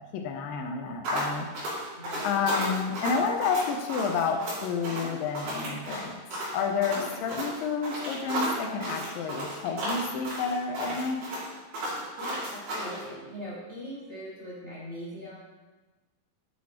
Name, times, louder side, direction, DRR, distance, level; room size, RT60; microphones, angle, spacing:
voice 1, 0.0-1.5 2.2-6.2 6.5-11.3, left 5 dB, 80° left, 3 dB, 2.3 m, -30 dB
sound 1, 1.0-13.0, right 1 dB, 80° right, 4.8 m, -33 dB
voice 2, 1.9-2.4 4.9-5.2 6.9-7.2 11.9-15.3, equal, 35° right, -7 dB, 1.3 m, -41 dB
10.5 x 6.4 x 3.0 m, 1.2 s
omnidirectional pair, 4.3 m